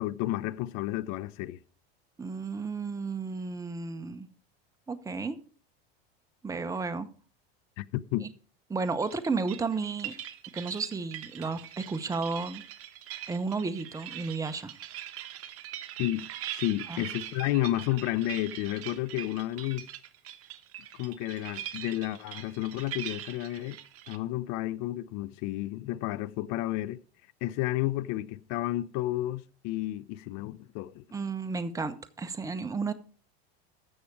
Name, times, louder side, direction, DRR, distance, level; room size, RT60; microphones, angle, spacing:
voice 1, 0.0-1.6 7.8-8.3 16.0-16.3 16.5-19.9 21.0-23.8 24.1-27.0 27.4-31.0, left 15 dB, 55° left, 0.6 m, -31 dB
voice 2, 2.2-4.3 4.9-5.4 6.4-7.1 8.7-10.1 10.5-12.6 13.3-14.7 16.9-17.0 31.1-32.9, right 4 dB, 10° right, 0.8 m, -33 dB
sound 1, 9.0-24.2, right 12 dB, 45° right, 1.1 m, -42 dB
15.0 x 6.5 x 4.7 m
hypercardioid pair, 95°, 33 cm